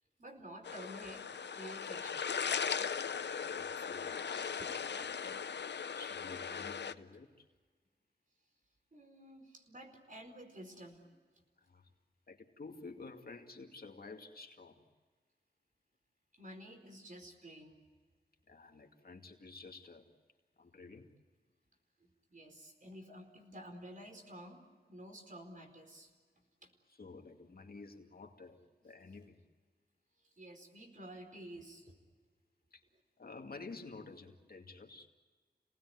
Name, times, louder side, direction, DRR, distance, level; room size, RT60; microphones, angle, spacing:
voice 1, 0.2-1.2 1.5-2.2 3.4-3.6 4.6-5.5 8.9-11.4 16.3-17.8 22.0-24.6 24.9-26.1 26.6-26.7 30.3-32.0, right 1 dB, 45° right, 4 dB, 4.6 m, -51 dB
sound 1, 0.6-6.9, left 6 dB, 80° left, 0.7 m, -38 dB
voice 2, 2.6-4.5 5.9-7.5 11.6-11.9 12.3-14.8 18.5-20.1 20.6-21.1 27.0-29.4 32.7-32.8 33.2-35.1, left 3 dB, 55° left, 2 dB, 2.4 m, -51 dB
29.0 x 19.0 x 9.5 m, 1.5 s
wide cardioid pair, 70°, 18 cm